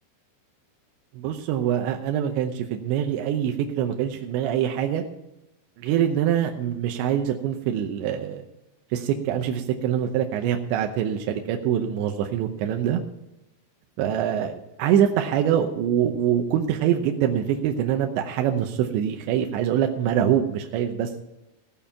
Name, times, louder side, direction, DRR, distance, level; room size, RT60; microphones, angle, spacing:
voice 1, 1.1-5.0 5.8-8.4 8.9-13.0 14.0-21.1, right 9 dB, 80° right, 4 dB, 2.8 m, -24 dB
17.5 x 7.1 x 5.7 m, 0.91 s
omnidirectional pair, 5.9 m